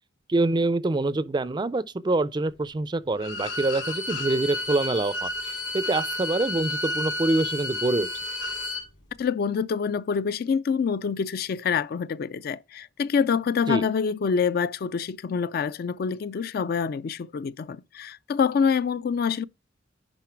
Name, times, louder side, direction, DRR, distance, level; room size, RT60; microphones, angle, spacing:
voice 1, 0.3-8.1 13.7-13.8, right 2 dB, 25° right, 0.4 m, -25 dB
Bowed string instrument, 3.2-8.8, left 1 dB, 80° left, 2.6 m, -31 dB
voice 2, 9.2-19.4, left 6 dB, 55° left, 0.3 m, -26 dB
11.0 x 3.8 x 4.5 m
head